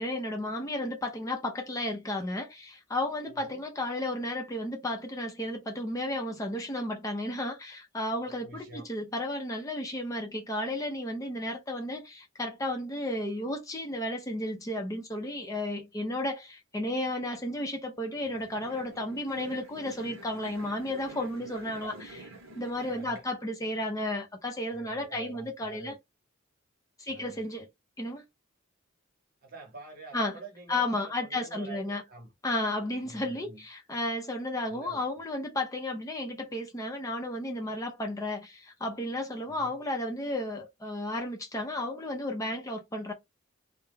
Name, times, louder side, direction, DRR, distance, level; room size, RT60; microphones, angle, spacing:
voice 1, 0.0-21.9 22.5-25.9 27.0-27.7 28.0-28.2 30.1-30.4 30.7-32.0 32.4-43.1, left 1 dB, 15° left, 0.5 m, -33 dB
voice 2, 3.3-3.6 8.3-8.9 21.7-22.0 22.8-23.2 24.7-26.0 27.1-27.4 29.4-32.3 33.0-33.6 34.7-35.0 39.5-39.7, right 2 dB, 45° right, 0.9 m, -47 dB
sound 1, 18.1-23.2, right 2 dB, 75° right, 0.8 m, -48 dB
2.2 x 2.1 x 3.2 m
head